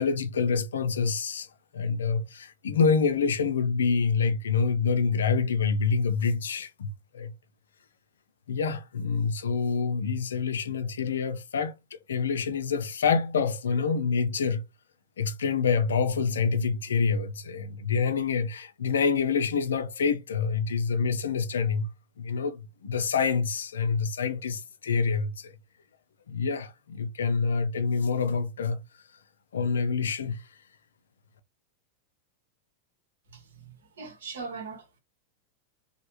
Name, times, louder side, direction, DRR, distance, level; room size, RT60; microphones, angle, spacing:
voice 1, 0.0-1.5 1.7-7.3 8.5-14.6 15.2-21.9 22.2-25.6 26.3-28.8 29.5-30.5, left 5 dB, 65° left, 0.5 m, -27 dB
voice 2, 33.3-34.9, right 4 dB, 65° right, 1.1 m, -41 dB
3.2 x 2.3 x 2.8 m
figure-of-eight pair, 90°, 0 cm